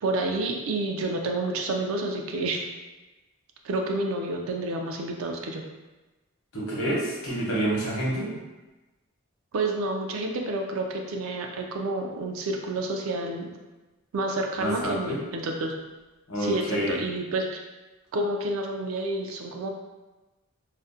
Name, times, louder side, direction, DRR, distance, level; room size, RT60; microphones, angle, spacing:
voice 1, 0.0-2.7 3.6-5.7 9.5-13.5 14.1-15.7 16.4-17.6 18.1-19.7, right 2 dB, 65° right, 2 dB, 0.3 m, -29 dB
voice 2, 6.5-8.3 14.6-15.2 16.3-16.9, right 1 dB, 75° left, -6 dB, 0.9 m, -28 dB
2.5 x 2.0 x 2.5 m, 1.1 s
head